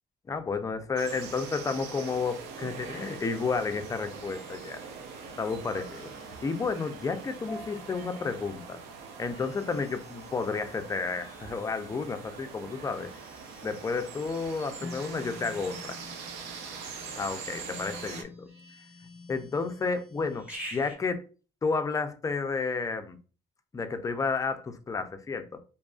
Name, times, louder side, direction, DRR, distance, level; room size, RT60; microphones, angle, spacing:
voice 1, 0.3-4.8 5.4-6.1 6.4-8.8 9.2-13.1 13.6-16.0 17.2-18.5 19.3-21.2 21.6-23.2 23.7-25.6, left 4 dB, 20° left, 0.3 m, -31 dB
sound 1, 1.0-18.2, right 5 dB, 85° right, 0.5 m, -43 dB
sound 2, 4.3-21.0, left 1 dB, 5° right, 1.3 m, -49 dB
2.7 x 2.3 x 2.3 m
cardioid pair, 110°, 17 cm